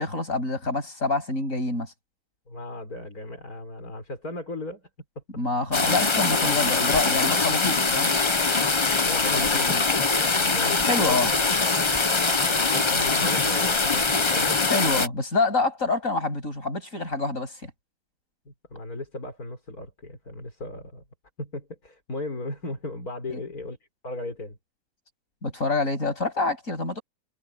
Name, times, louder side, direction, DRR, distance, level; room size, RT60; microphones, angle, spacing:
voice 1, 0.0-1.9 5.4-8.1 9.3-9.8 10.8-11.3 14.7-17.7 23.3-23.4 25.4-27.0, left 3 dB, 60° left, 8.6 m, -27 dB
voice 2, 2.5-4.9 5.2-5.3 8.8-11.2 12.3-14.6 18.5-21.0 21.4-23.8 24.0-24.6, left 2 dB, 75° left, 5.3 m, -37 dB
sound 1, 5.7-15.1, left 3 dB, 25° left, 0.7 m, -23 dB
omnidirectional pair, 1.6 m